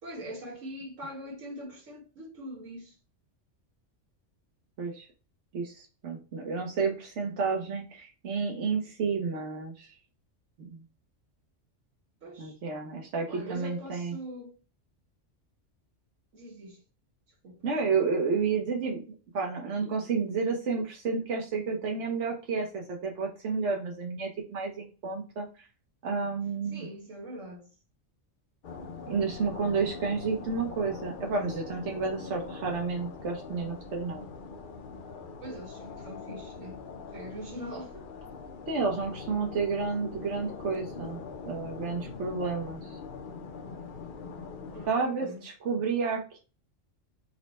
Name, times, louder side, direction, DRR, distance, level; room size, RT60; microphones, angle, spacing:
voice 1, 0.0-2.9 12.2-12.5 13.3-14.6 16.3-16.8 17.4-17.6 26.7-27.7 35.4-36.8 37.1-38.1 44.7-45.4, equal, 90° right, 1.8 m, -42 dB
voice 2, 5.5-9.9 10.6-10.8 12.4-14.1 17.6-19.0 19.3-25.7 26.0-26.9 29.1-34.2 38.7-41.2 41.5-43.0 44.9-46.4, right 4 dB, 70° right, 1.1 m, -31 dB
sound 1, 28.6-44.9, left 5 dB, 55° left, 0.6 m, -42 dB
4.3 x 2.1 x 4.1 m
omnidirectional pair, 1.3 m